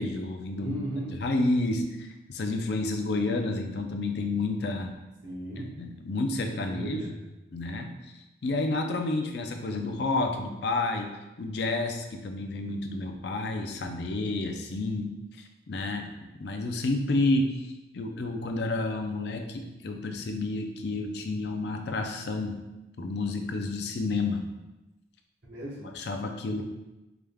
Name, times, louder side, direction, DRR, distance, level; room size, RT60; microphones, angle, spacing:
voice 1, 0.0-0.8 1.1-4.9 5.8-7.0 7.5-7.9 8.4-11.1 11.4-15.1 15.7-16.1 16.4-17.6 17.9-22.6 23.0-24.4 26.0-26.6, left 2 dB, 60° left, 4 dB, 0.4 m, -30 dB
voice 2, 0.5-1.2 5.2-5.7 6.4-7.1 16.1-16.2 25.4-25.9, right 1 dB, 75° right, -4 dB, 1.3 m, -36 dB
4.8 x 3.5 x 2.2 m, 1.0 s
head